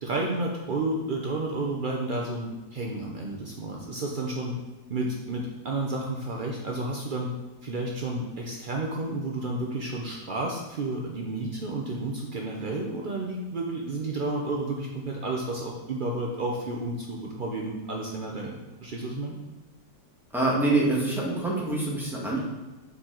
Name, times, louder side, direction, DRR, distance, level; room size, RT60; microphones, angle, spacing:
voice 1, 0.0-4.6 4.9-7.3 7.6-19.4, right 2 dB, 75° right, 0 dB, 0.4 m, -31 dB
voice 2, 20.3-22.4, right 2 dB, ahead, -4 dB, 1.2 m, -25 dB
6.6 x 4.5 x 3.8 m, 1.1 s
omnidirectional pair, 1.8 m